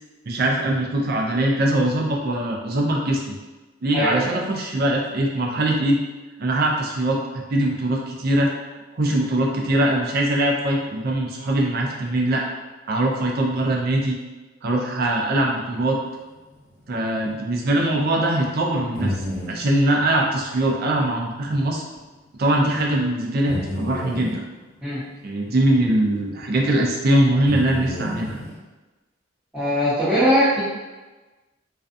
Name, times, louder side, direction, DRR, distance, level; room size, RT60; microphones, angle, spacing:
voice 1, 0.3-3.4 3.8-6.0 6.4-8.5 8.9-12.4 12.9-14.2 14.6-16.0 16.9-21.8 22.4-24.4 25.2-28.4, right 1 dB, 55° right, -1 dB, 0.5 m, -22 dB
voice 2, 3.9-4.3 24.8-25.0 29.5-30.6, equal, 5° right, -14 dB, 0.8 m, -20 dB
sound 1, 17.3-17.4 17.8-17.9 18.9-19.5 21.5-21.6 21.9-22.0 23.5-24.3 26.4-26.5 27.4-28.6, left 1 dB, 85° left, 0.9 m, -30 dB
2.5 x 2.3 x 2.5 m, 1.2 s
head